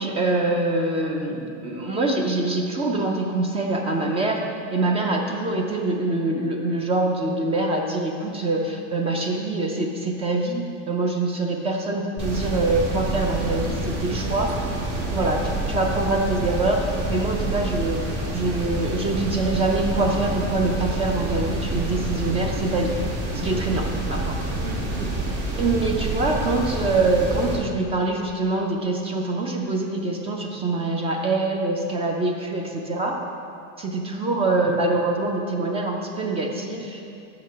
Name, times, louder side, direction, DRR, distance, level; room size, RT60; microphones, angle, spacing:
voice 1, 0.0-4.4 4.7-14.5 15.1-15.4 15.7-16.8 17.1-18.0 18.3-22.9 23.3-24.4 25.6-33.2 33.8-37.0, right 2 dB, 15° right, 2 dB, 0.4 m, -24 dB
sound 1, 12.2-27.6, right 2 dB, 40° right, 1.5 m, -28 dB
voice 2, 14.0-15.5 24.6-25.2 34.4-34.8, right 4 dB, 85° right, 2 dB, 1.0 m, -38 dB
6.7 x 4.8 x 5.6 m, 2.7 s
supercardioid pair, 150°, 36 cm